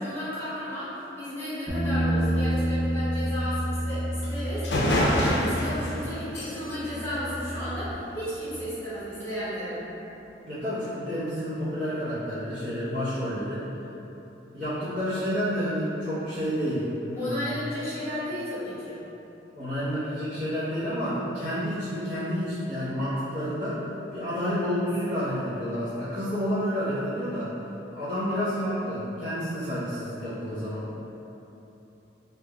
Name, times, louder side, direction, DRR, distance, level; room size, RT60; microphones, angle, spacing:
voice 1, 0.0-9.8 17.2-19.0, equal, 15° left, -14 dB, 0.9 m, -33 dB
sound 1, 1.7-7.9, equal, 20° right, 0.5 m, -29 dB
sound 2, 4.2-4.3 4.6-8.1, left 1 dB, 65° left, 0.5 m, -28 dB
voice 2, 10.4-13.6 14.5-17.5 19.5-23.8 24.1-27.5 27.9-30.9, equal, 45° right, -16 dB, 0.9 m, -29 dB
2.8 x 2.3 x 3.6 m, 3.0 s
head